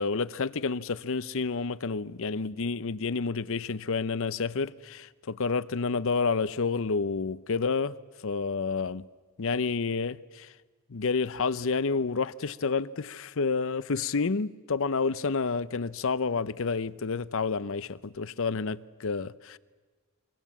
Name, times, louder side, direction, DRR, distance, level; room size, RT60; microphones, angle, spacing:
voice 1, 0.0-7.9 8.2-9.1 9.4-10.5 10.9-19.6, left 4 dB, 65° left, 0.7 m, -29 dB
25.5 x 24.5 x 7.3 m
head